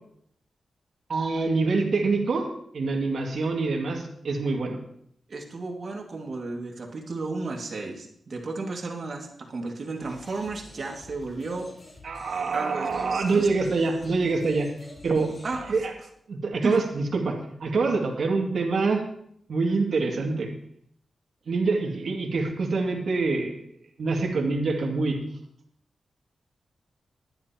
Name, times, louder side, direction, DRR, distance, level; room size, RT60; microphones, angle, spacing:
voice 1, 1.1-2.5 2.7-4.8 12.0-14.7 15.0-15.3 15.7-15.9 16.3-19.0 19.5-20.5 21.5-23.6 24.0-25.2, right 3 dB, 75° right, 1 dB, 2.3 m, -25 dB
voice 2, 5.3-11.7 12.5-13.5 15.2-15.8 16.6-16.8, right 3 dB, 60° right, 2 dB, 2.2 m, -33 dB
sound 1, 10.0-15.8, left 1 dB, 45° left, 3.8 m, -48 dB
20.0 x 10.5 x 3.0 m, 0.69 s
cardioid pair, 80°, 0 cm